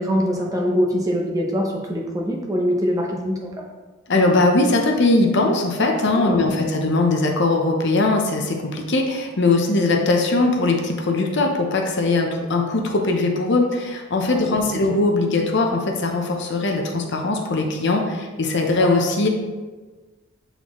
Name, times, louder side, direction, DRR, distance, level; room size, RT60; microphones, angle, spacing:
voice 1, 0.0-3.6 6.1-6.7 14.3-14.4 14.9-15.0, equal, 15° right, -1 dB, 0.7 m, -24 dB
voice 2, 4.1-19.3, left 2 dB, 55° left, 2 dB, 0.7 m, -20 dB
8.1 x 3.9 x 3.0 m, 1.3 s
head